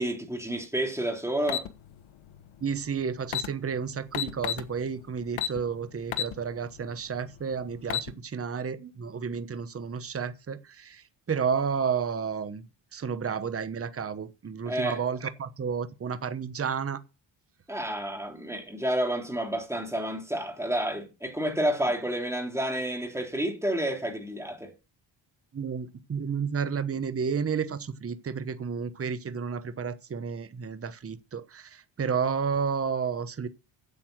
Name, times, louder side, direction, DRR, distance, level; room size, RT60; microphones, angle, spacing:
voice 1, 0.0-1.7 14.6-15.0 17.7-24.7, right 1 dB, 5° right, 2.9 m, -30 dB
sound 1, 1.5-1.7 2.9-3.0 3.2-3.5 4.1-4.7 5.4-5.6 6.1-6.3 6.8-6.9 7.7-8.1, left 10 dB, 85° left, 1.3 m, -29 dB
voice 2, 2.6-17.0 25.5-33.5, right 6 dB, 30° right, 1.1 m, -31 dB
8.7 x 8.4 x 6.0 m
cardioid pair, 115°, 46 cm